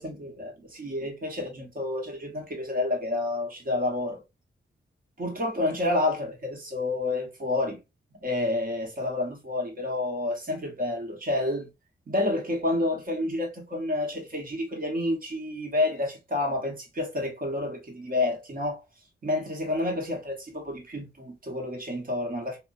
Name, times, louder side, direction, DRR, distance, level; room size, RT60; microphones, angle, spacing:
voice 1, 0.0-4.2 5.2-7.8 8.2-11.7 12.1-18.8 19.2-22.6, left 2 dB, 45° right, 1.1 m, -29 dB
3.0 x 2.1 x 2.5 m
cardioid pair, 90°, 19 cm